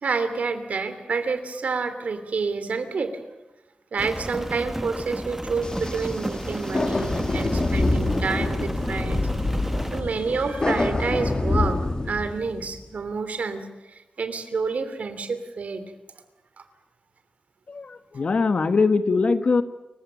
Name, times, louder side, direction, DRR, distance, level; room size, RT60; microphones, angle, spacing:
voice 1, 0.0-3.2 3.9-9.3 9.9-15.8 16.6-16.7, right 4 dB, 70° right, 10 dB, 2.8 m, -29 dB
Rain, 4.0-10.0, right 1 dB, 10° right, 1.0 m, -33 dB
sound 1, 5.6-12.8, left 2 dB, 35° left, 2.2 m, -26 dB
voice 2, 17.7-19.6, left 4 dB, 55° left, 10 dB, 1.4 m, -22 dB
29.0 x 16.0 x 9.2 m, 1.0 s
wide cardioid pair, 150°, 3 cm